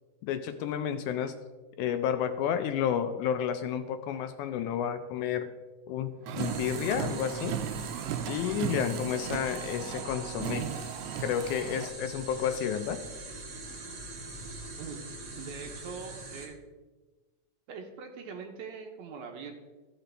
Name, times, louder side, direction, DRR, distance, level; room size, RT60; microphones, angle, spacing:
voice 1, 0.2-1.4 1.8-5.5 5.9-7.6 8.3-10.7 11.2-13.0, left 9 dB, 80° left, 9 dB, 1.8 m, -31 dB
Car, 6.3-11.9, right 9 dB, 90° right, 2.2 m, -36 dB
sound 1, 6.4-16.5, right 2 dB, 50° right, 2.0 m, -43 dB
voice 2, 15.3-16.6 17.7-19.5, right 5 dB, 70° right, 3 dB, 1.9 m, -42 dB
14.5 x 5.9 x 3.3 m, 1.3 s
omnidirectional pair, 3.7 m